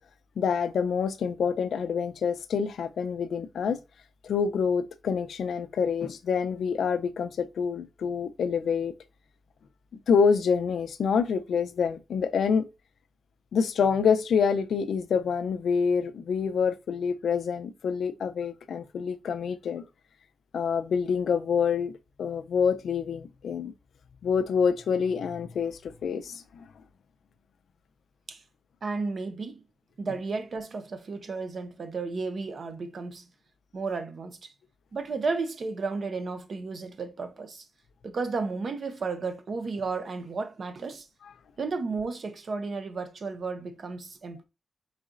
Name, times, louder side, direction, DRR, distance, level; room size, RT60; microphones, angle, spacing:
voice 1, 0.4-3.8 4.2-8.9 10.1-12.7 13.5-19.8 20.5-21.9 22.2-23.7 24.2-26.7, left 6 dB, 85° left, 0.5 m, -27 dB
voice 2, 28.8-29.6 30.0-33.3 33.7-34.5 34.9-37.6 38.0-41.1 41.6-44.4, right 4 dB, 45° right, 0.6 m, -33 dB
4.7 x 4.1 x 2.5 m
wide cardioid pair, 170°, 0 cm